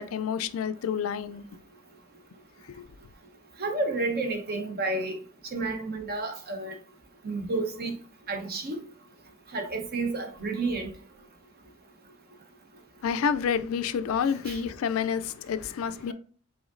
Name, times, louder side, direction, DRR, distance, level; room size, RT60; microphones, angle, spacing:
voice 1, 0.0-1.4 2.7-2.8 13.0-16.1, left 7 dB, 85° left, 0.4 m, -29 dB
voice 2, 3.6-5.2 5.5-6.7 7.2-7.9 8.3-8.8 9.5-10.9 14.5-14.6, right 3 dB, 45° right, 0.9 m, -30 dB
4.9 x 3.8 x 2.5 m
head